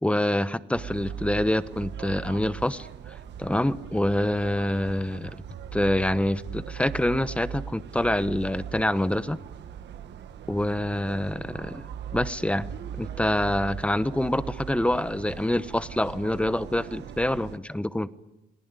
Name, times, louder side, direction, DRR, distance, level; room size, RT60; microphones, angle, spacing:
voice 1, 0.0-3.1 3.4-5.4 5.7-9.4 10.5-11.9 12.1-12.7 13.0-18.1, left 1 dB, 5° left, 15 dB, 1.0 m, -26 dB
sound 1, 0.7-17.6, right 8 dB, 75° right, 1.5 m, -40 dB
28.0 x 19.0 x 9.6 m, 0.90 s
cardioid pair, 90°, 18 cm